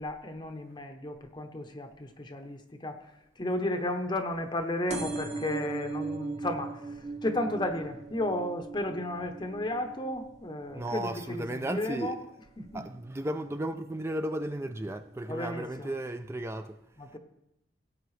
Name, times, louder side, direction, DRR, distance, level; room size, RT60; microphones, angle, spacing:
voice 1, 0.0-3.1 3.4-12.2 12.6-12.8 15.3-15.9 17.0-17.2, left 1 dB, 25° left, 0.7 m, -33 dB
sound 1, 4.9-12.1 12.6-13.1 13.9-14.0 14.3-14.4 14.6-14.7, right 3 dB, 40° right, 1.1 m, -39 dB
voice 2, 10.7-12.2 12.7-16.8 17.1-17.2, right 1 dB, 15° right, 0.4 m, -34 dB
17.5 x 7.8 x 3.2 m
head